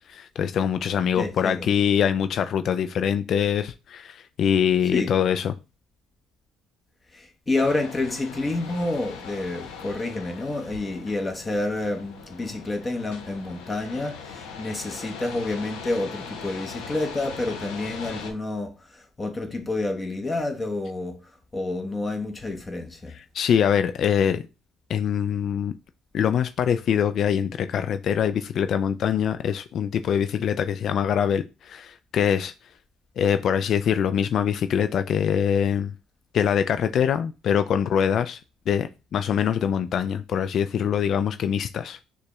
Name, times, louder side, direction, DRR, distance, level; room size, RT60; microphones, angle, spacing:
voice 1, 0.1-5.5 23.1-24.4 24.9-25.7 26.1-32.5 33.2-35.9 36.3-38.4 38.7-42.0, left 8 dB, 55° left, 0.3 m, -24 dB
voice 2, 1.1-1.7 4.9-5.1 7.1-23.1, left 2 dB, 25° left, 1.1 m, -29 dB
sound 1, 7.6-18.3, left 5 dB, 80° left, 1.0 m, -40 dB
6.4 x 2.3 x 3.0 m
supercardioid pair, 70°, 0 cm